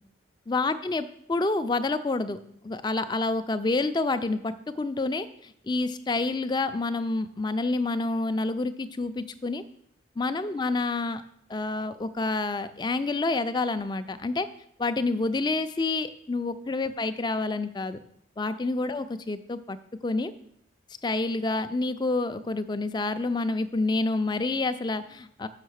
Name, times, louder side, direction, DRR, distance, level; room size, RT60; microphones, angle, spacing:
voice 1, 0.5-2.4 2.6-9.6 10.2-11.2 11.5-14.5 14.8-18.0 18.4-19.8 20.0-20.3 21.0-25.5, left 3 dB, 20° left, 11 dB, 0.4 m, -28 dB
6.6 x 6.3 x 6.3 m, 0.71 s
head